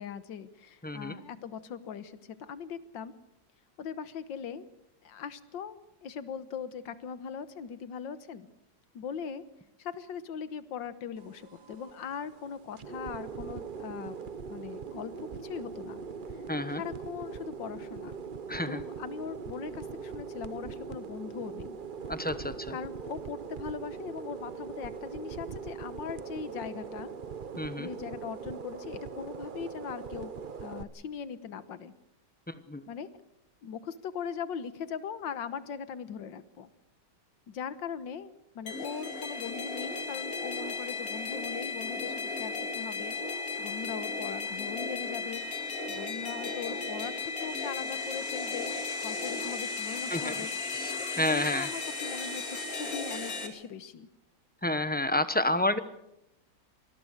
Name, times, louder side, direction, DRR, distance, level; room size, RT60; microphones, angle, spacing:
voice 1, 0.0-3.1 3.8-4.7 5.0-8.5 8.9-9.4 9.8-14.2 14.5-15.1 15.4-16.0 16.7-18.2 18.7-21.8 22.7-27.1 27.8-30.3 30.6-31.9 32.9-33.1 33.6-36.7 37.5-45.4 45.9-48.7 49.0-50.5 51.0-54.1, left 7 dB, 85° left, 13 dB, 1.9 m, -40 dB
voice 2, 0.8-1.2 16.5-16.8 18.5-18.8 22.1-22.7 27.6-27.9 32.7-32.8 50.1-50.3 50.7-51.7 54.6-55.8, left 1 dB, 10° left, 12 dB, 0.4 m, -29 dB
sound 1, 11.2-30.8, right 5 dB, 40° right, 0.8 m, -41 dB
sound 2, 38.7-53.5, left 3 dB, 50° left, 2.7 m, -35 dB
25.5 x 20.0 x 6.6 m, 0.84 s
omnidirectional pair, 2.0 m